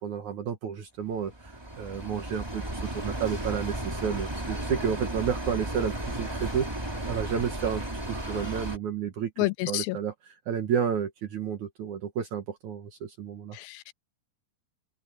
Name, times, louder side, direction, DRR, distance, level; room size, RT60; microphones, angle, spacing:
voice 1, 0.0-7.8 8.1-13.6, right 8 dB, 60° right, 2.7 m, -31 dB
sound 1, 1.2-8.8, right 1 dB, 10° right, 2.3 m, -34 dB
voice 2, 9.4-10.0 13.5-13.9, left 18 dB, 80° left, 2.4 m, -29 dB
omnidirectional pair, 4.3 m